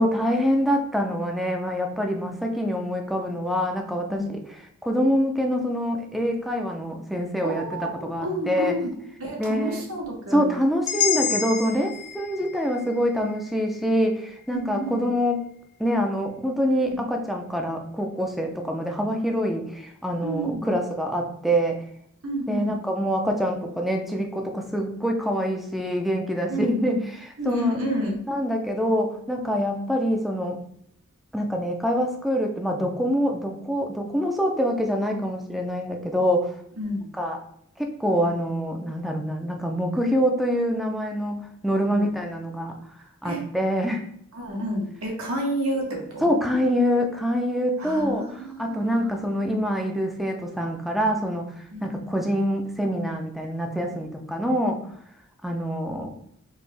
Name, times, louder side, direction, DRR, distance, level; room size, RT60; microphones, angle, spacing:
voice 1, 0.0-8.8 9.4-9.8 10.3-15.4 15.8-21.8 22.5-27.8 28.3-30.6 31.3-36.5 37.1-37.4 37.8-41.4 41.6-42.8 43.2-44.0 46.2-51.5 51.8-54.8 55.4-56.2, equal, ahead, 2 dB, 0.5 m, -25 dB
voice 2, 7.4-8.9 9.2-10.6 14.5-15.0 16.8-17.0 20.2-20.7 22.2-22.8 26.5-27.0 27.4-28.2 36.8-37.1 41.9-42.1 43.2-43.4 44.3-46.3 47.8-49.3 51.7-51.9, right 1 dB, 70° right, -2 dB, 1.4 m, -30 dB
sound 1, 10.9-14.9, left 9 dB, 55° left, 0.8 m, -30 dB
4.4 x 2.9 x 3.3 m, 0.70 s
head